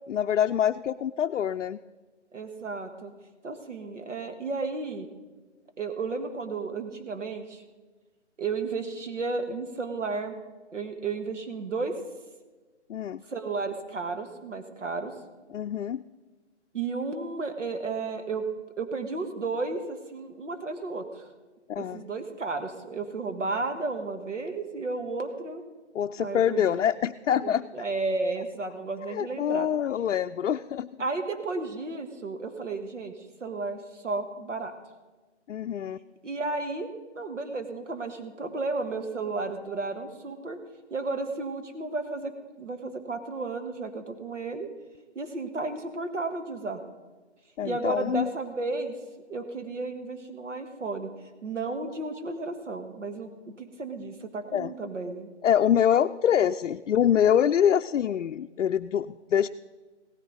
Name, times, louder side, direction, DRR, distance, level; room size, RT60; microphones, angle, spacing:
voice 1, 0.1-1.8 12.9-13.2 15.5-16.0 21.7-22.0 25.9-27.7 29.1-30.9 35.5-36.0 47.6-48.3 54.5-54.7 55.4-59.5, left 9 dB, 90° left, 7 dB, 0.5 m, -25 dB
voice 2, 2.3-3.1 3.4-5.1 5.8-7.6 8.4-10.4 10.7-11.9 13.3-15.1 16.7-18.5 18.8-21.3 21.8-25.6 26.2-26.8 27.4-29.7 31.0-33.1 33.4-34.7 36.2-36.9 37.2-40.6 40.9-42.3 42.6-44.7 45.2-46.8 47.6-49.0 49.3-51.1 51.4-53.3 53.6-55.3, right 3 dB, 90° right, 7 dB, 1.6 m, -33 dB
17.0 x 10.5 x 4.0 m, 1.3 s
hypercardioid pair, 170°, 36 cm